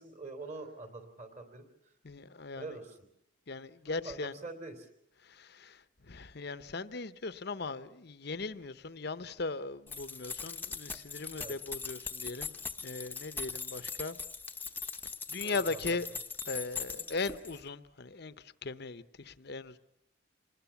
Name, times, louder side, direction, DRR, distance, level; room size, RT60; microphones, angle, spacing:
voice 1, 0.0-1.7 2.6-3.0 3.8-4.9 11.4-11.6 15.4-16.2, right 3 dB, 35° right, 3.2 m, -45 dB
voice 2, 2.0-2.7 3.5-4.3 5.3-5.8 6.1-14.2 15.3-16.1 16.4-18.3 18.6-19.8, left 3 dB, 55° left, 0.9 m, -38 dB
sound 1, 9.9-17.6, left 5 dB, 10° left, 1.0 m, -41 dB
26.0 x 20.5 x 7.1 m
head